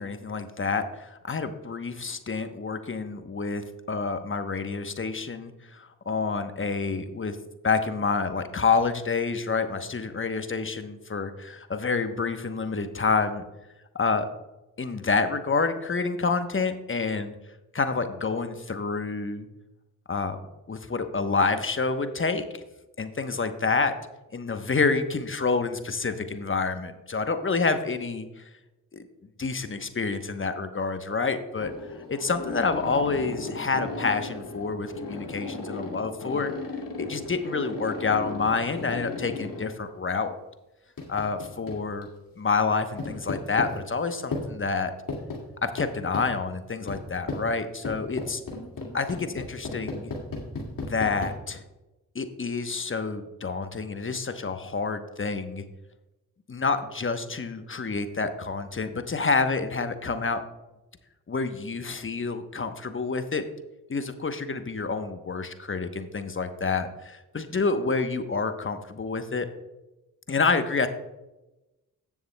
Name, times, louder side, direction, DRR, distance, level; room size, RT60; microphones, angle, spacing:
voice 1, 0.0-7.4 7.6-13.4 13.9-14.3 14.8-17.3 17.7-19.5 20.1-20.4 20.7-22.4 23.0-23.9 24.3-28.4 28.9-29.0 29.4-31.7 32.1-36.5 37.0-40.3 41.1-42.1 42.4-44.9 45.6-48.4 48.9-50.1 50.9-51.6 52.1-55.6 56.5-60.4 61.3-63.5 63.9-69.5 70.3-70.9, left 4 dB, 30° left, 9 dB, 1.0 m, -28 dB
sound 1, 31.6-39.6 41.0-42.0 43.0-43.7 44.3-44.4 45.1-45.4 45.8-46.3 46.9-47.0 47.3-47.4 47.8-51.3, left 3 dB, 50° left, 2.2 m, -35 dB
16.0 x 7.2 x 2.2 m, 1.0 s
hypercardioid pair, 40°, 41 cm